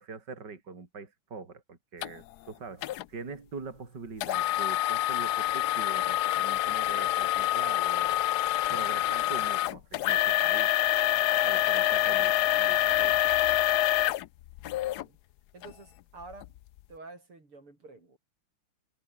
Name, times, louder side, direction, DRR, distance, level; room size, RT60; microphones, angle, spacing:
voice 1, 0.0-8.2 8.7-10.7 11.4-13.4, right 4 dB, 50° right, 3.8 m, -43 dB
sound 1, 2.0-2.1 2.8-3.0 4.2-15.0 15.6-15.7 16.3-16.5, left 15 dB, 85° left, 0.9 m, -26 dB
voice 2, 14.8-15.2 15.5-16.6 16.9-18.2, right 3 dB, 80° right, 7.3 m, -49 dB
omnidirectional pair, 2.4 m